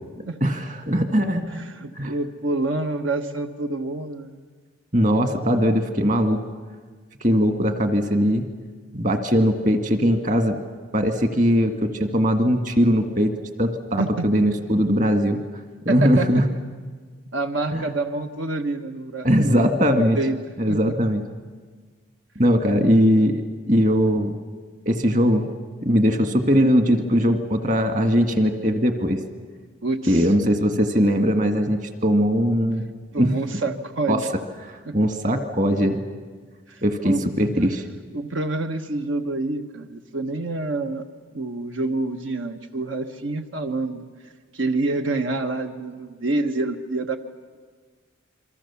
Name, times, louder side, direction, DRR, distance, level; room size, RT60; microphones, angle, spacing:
voice 1, 0.4-1.4 2.0-2.1 4.9-6.4 7.2-8.5 8.9-10.6 10.9-13.3 13.6-15.4 15.9-16.4 17.7-17.9 19.2-20.2 20.6-21.2 22.4-24.3 24.9-25.5 25.8-29.2 30.1-32.8 33.2-33.4 34.1-34.2 34.7-36.0 36.8-37.8, equal, 40° right, 7 dB, 1.8 m, -20 dB
voice 2, 1.5-4.4 14.0-14.3 15.9-16.3 17.3-19.8 20.1-20.4 20.7-20.9 22.7-23.0 29.8-30.3 33.1-34.3 34.8-35.0 36.7-37.2 38.1-41.0 41.3-47.2, right 2 dB, 85° right, 6 dB, 1.2 m, -27 dB
27.5 x 24.0 x 7.1 m, 1.5 s
head